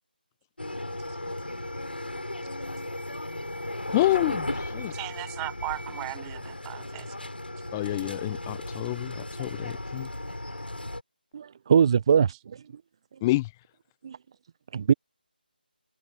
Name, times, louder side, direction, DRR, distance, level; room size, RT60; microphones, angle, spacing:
sound 1, 0.6-11.0, left 1 dB, 85° left, 5.9 m, -36 dB
voice 1, 3.9-4.9 7.7-10.1 13.2-13.5, left 18 dB, 15° left, 0.9 m, -28 dB
voice 2, 4.9-7.1, right 30 dB, 15° right, 3.9 m, -37 dB
voice 3, 11.3-12.8 14.0-14.2 14.7-14.9, right 7 dB, 30° right, 0.7 m, -22 dB
figure-of-eight pair, 155°, 5 cm